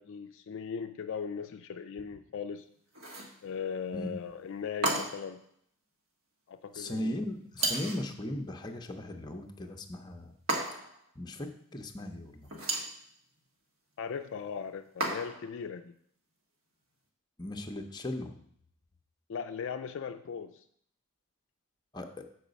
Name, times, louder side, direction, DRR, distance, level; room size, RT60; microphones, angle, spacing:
voice 1, 0.0-2.6 3.4-5.4 6.5-7.2 14.0-15.9 19.3-20.6, left 6 dB, 60° left, 7 dB, 0.4 m, -38 dB
sound 1, 2.9-3.4 4.8-5.3 7.6-8.1 10.5-11.0 12.4-13.0 15.0-15.5, right 2 dB, 65° right, 1.6 m, -33 dB
voice 2, 6.7-10.3 11.2-12.5 17.4-18.3 21.9-22.3, left 1 dB, 20° left, 3 dB, 0.7 m, -38 dB
7.3 x 4.8 x 5.1 m, 0.66 s
head